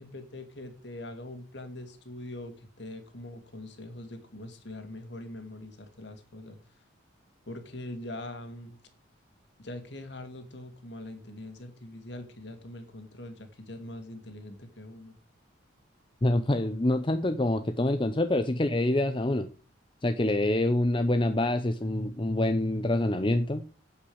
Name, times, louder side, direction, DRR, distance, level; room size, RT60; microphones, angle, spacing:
voice 1, 0.0-6.6 7.4-8.8 9.6-15.1, left 1 dB, 55° left, 7 dB, 2.5 m, -42 dB
voice 2, 16.2-19.5 20.0-23.6, left 1 dB, 25° left, 9 dB, 0.7 m, -26 dB
8.7 x 8.4 x 7.9 m, 0.38 s
head